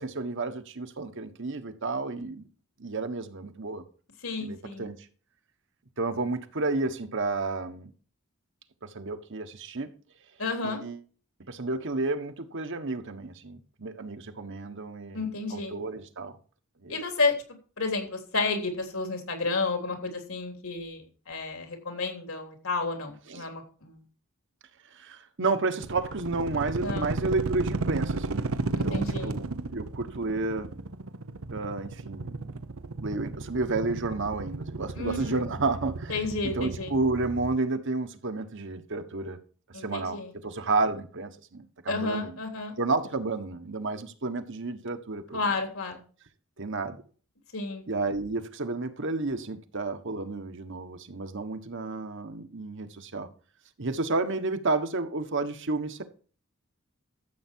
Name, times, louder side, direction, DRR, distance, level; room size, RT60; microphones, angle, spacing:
voice 1, 0.0-2.5 2.8-3.8 4.4-5.1 6.0-7.9 8.8-9.9 10.6-11.0 11.5-16.4 16.8-17.0 23.3-23.5 24.9-30.7 31.5-32.5 33.0-39.4 39.7-40.2 40.4-42.4 42.8-45.5 46.6-47.0 47.9-53.3 53.8-56.0, right 3 dB, 60° right, 1.4 m, -31 dB
voice 2, 4.2-4.9 10.4-10.8 15.1-15.7 16.9-17.3 17.8-24.0 26.8-27.1 28.7-29.4 34.9-35.4 36.1-36.9 39.7-40.3 41.9-42.8 45.3-46.0 47.5-47.8, left 3 dB, 75° left, 3.3 m, -31 dB
sound 1, 25.8-37.6, right 3 dB, 85° right, 0.8 m, -34 dB
13.5 x 8.0 x 4.6 m
head